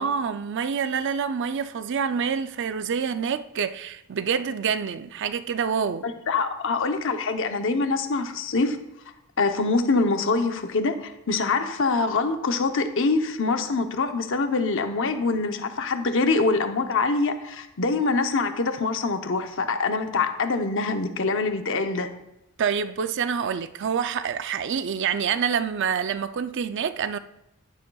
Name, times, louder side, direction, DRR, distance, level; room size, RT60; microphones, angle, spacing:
voice 1, 0.0-6.1 22.6-27.2, right 6 dB, 55° right, 0.4 m, -27 dB
voice 2, 6.0-8.8 9.4-22.1, left 3 dB, 60° left, 0.8 m, -24 dB
11.5 x 9.6 x 2.3 m
head